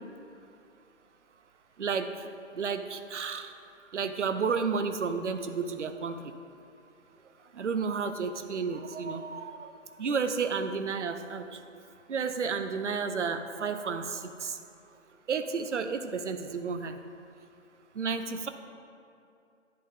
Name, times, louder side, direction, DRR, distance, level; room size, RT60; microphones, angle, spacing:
voice 1, 1.8-2.3 2.5-3.5 3.9-6.3 7.5-9.7 10.0-11.6 12.1-14.6 15.3-17.0 17.9-18.5, right 5 dB, 65° right, 9 dB, 0.7 m, -32 dB
10.0 x 7.9 x 3.5 m, 2.5 s
figure-of-eight pair, 145°, 39 cm